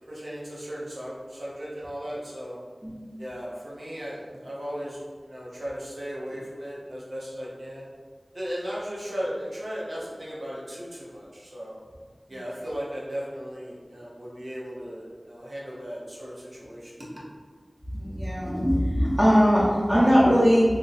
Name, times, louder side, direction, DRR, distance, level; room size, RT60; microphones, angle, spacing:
voice 1, 0.1-2.6 3.2-7.9 8.3-11.8 12.3-17.2, equal, 75° right, -6 dB, 0.9 m, -36 dB
voice 2, 17.9-20.6, equal, 15° right, -10 dB, 0.9 m, -20 dB
2.6 x 2.2 x 4.0 m, 1.6 s
wide cardioid pair, 45°, 0 cm